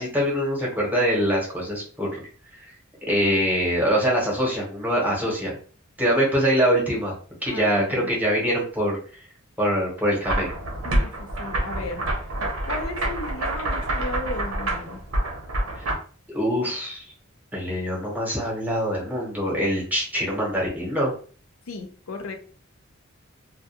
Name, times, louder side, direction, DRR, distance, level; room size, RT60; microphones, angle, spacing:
voice 1, 0.0-2.2 3.1-5.5 6.0-7.1 7.4-9.0 9.6-10.5 15.8-15.9 16.3-17.0 17.5-21.1, equal, 10° right, -4 dB, 0.9 m, -24 dB
voice 2, 7.4-8.1 10.8-12.3 12.7-15.0 21.7-22.4, left 2 dB, 80° left, 5 dB, 0.5 m, -35 dB
sound 1, 10.2-15.9, right 1 dB, 85° right, 0.7 m, -27 dB
2.3 x 2.2 x 2.8 m, 0.41 s
head